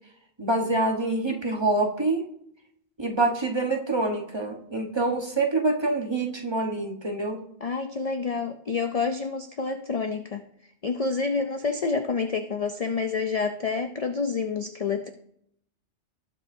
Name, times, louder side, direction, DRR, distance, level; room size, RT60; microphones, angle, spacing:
voice 1, 0.4-2.2 3.0-7.4, right 2 dB, 25° right, 1 dB, 1.2 m, -26 dB
voice 2, 7.6-10.4 10.8-15.1, left 4 dB, 45° left, 6 dB, 0.5 m, -28 dB
18.5 x 6.7 x 2.7 m, 0.73 s
omnidirectional pair, 1.2 m